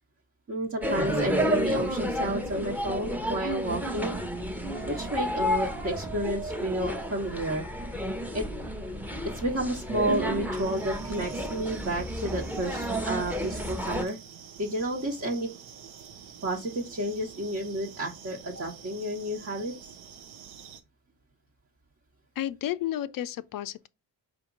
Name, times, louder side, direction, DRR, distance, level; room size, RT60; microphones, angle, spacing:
voice 1, 0.5-4.1 4.9-7.6 7.9-8.0 8.3-8.4 9.3-14.2 14.6-15.5 16.4-19.7, right 1 dB, 35° right, 1.2 m, -31 dB
sound 1, 0.8-14.0, equal, 5° right, 0.8 m, -31 dB
sound 2, 10.5-20.8, right 8 dB, 75° right, 0.8 m, -48 dB
voice 2, 22.4-23.9, left 12 dB, 45° left, 0.5 m, -32 dB
5.0 x 2.8 x 3.8 m
hypercardioid pair, 45°, 48 cm